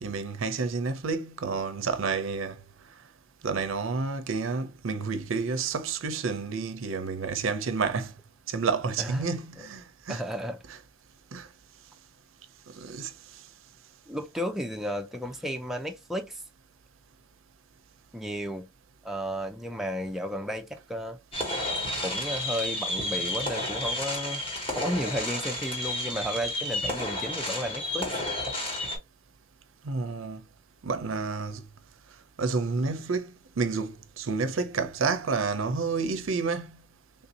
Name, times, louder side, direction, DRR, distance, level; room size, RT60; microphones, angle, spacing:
voice 1, 0.0-2.5 3.4-8.1 8.5-10.2 11.3-11.5 12.7-13.1 29.8-30.4 30.8-31.6 32.4-36.8, right 4 dB, 70° right, 0.5 m, -30 dB
voice 2, 9.0-9.3 9.6-9.7 10.1-10.6 14.1-16.4 18.1-18.7 19.0-21.2 22.0-24.4 24.8-28.2, equal, ahead, 0.4 m, -33 dB
sound 1, 21.3-29.0, left 1 dB, 30° left, 1.3 m, -31 dB
3.5 x 2.6 x 2.8 m
head